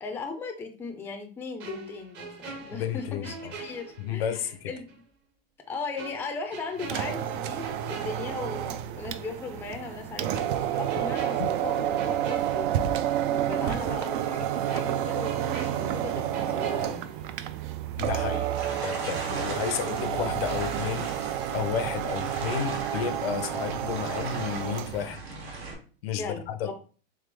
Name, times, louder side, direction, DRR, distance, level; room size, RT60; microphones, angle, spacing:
voice 1, 0.0-5.0 5.7-13.0 13.3-17.0 26.2-26.7, left 4 dB, 5° left, 0.4 m, -38 dB
sound 1, 1.6-4.5 4.9-5.0 6.0-8.9 9.2-9.4 10.3-13.3 13.6-13.7 14.7-17.7 18.0-18.2, right 4 dB, 35° right, 0.8 m, -43 dB
voice 2, 2.7-3.5 4.0-4.7 11.4-11.5 18.0-18.5 18.8-25.2 26.0-26.7, left 9 dB, 80° left, 0.7 m, -32 dB
sound 2, 6.8-25.0, right 11 dB, 60° right, 0.4 m, -30 dB
sound 3, 18.5-25.7, right 3 dB, 85° right, 1.5 m, -39 dB
3.4 x 3.3 x 3.3 m
supercardioid pair, 140°, 30 cm